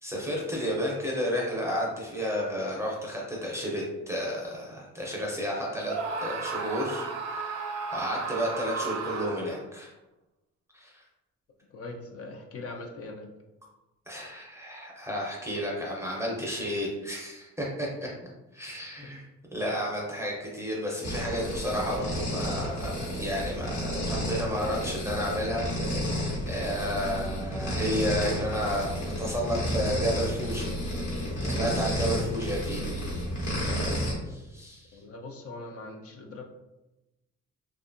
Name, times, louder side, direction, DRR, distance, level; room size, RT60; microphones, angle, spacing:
voice 1, 0.0-5.9 6.2-7.6 7.9-9.9 10.7-11.0 14.1-18.1 18.5-19.2 19.5-26.2 26.5-30.7 31.5-32.8 34.2-35.0, equal, 10° right, -4 dB, 0.6 m, -32 dB
Screaming, 5.8-9.6, right 4 dB, 55° right, 0.5 m, -34 dB
voice 2, 11.7-13.3 19.0-19.1 34.9-36.4, left 2 dB, 50° left, 3 dB, 0.5 m, -41 dB
sound 1, 21.0-34.1, equal, 75° left, 1.2 m, -31 dB
2.6 x 2.3 x 2.5 m, 1.0 s
cardioid pair, 90°, 30 cm